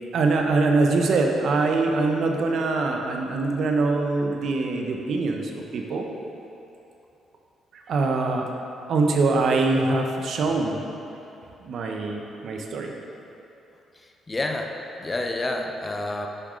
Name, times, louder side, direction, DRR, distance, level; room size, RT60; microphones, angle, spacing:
voice 1, 0.1-6.1 7.9-8.5 8.9-10.8 11.6-12.9, right 3 dB, 65° right, 2 dB, 0.8 m, -23 dB
voice 2, 14.3-14.7 15.0-16.3, left 2 dB, 25° left, 3 dB, 0.7 m, -28 dB
9.9 x 5.3 x 3.8 m, 2.8 s
cardioid pair, 90°, 0 cm